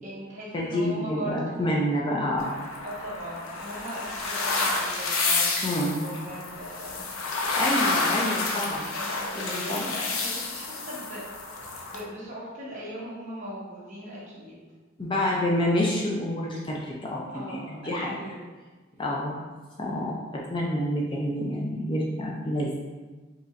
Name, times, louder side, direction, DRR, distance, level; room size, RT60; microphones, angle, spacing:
voice 1, 0.0-1.8 2.8-7.1 7.5-7.9 8.6-11.2 11.6-14.6 17.3-18.4, right 1 dB, 35° right, -7 dB, 1.2 m, -39 dB
voice 2, 0.5-2.7 5.6-6.1 7.5-8.9 9.4-9.9 15.0-18.2 19.0-19.5 19.8-22.7, left 1 dB, 25° left, -3 dB, 0.4 m, -28 dB
sound 1, 2.4-12.0, left 3 dB, 90° left, 0.6 m, -29 dB
5.0 x 3.0 x 2.5 m, 1.3 s
head